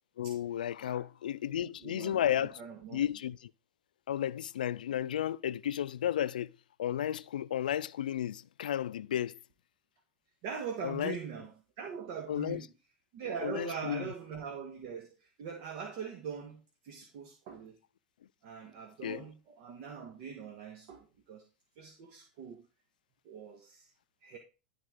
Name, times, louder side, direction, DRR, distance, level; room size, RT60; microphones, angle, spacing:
voice 1, 0.2-2.6 2.9-3.5 4.1-6.5 6.8-9.4 10.8-11.2 12.3-12.6 13.4-14.0 19.0-19.2, left 10 dB, 90° left, 0.4 m, -33 dB
voice 2, 1.4-3.1 10.4-12.7 13.1-17.8 18.4-21.4 21.8-22.6 23.2-23.9 24.2-24.4, right 7 dB, 65° right, 1.6 m, -42 dB
12.0 x 4.4 x 4.9 m
hypercardioid pair, 100°, 4 cm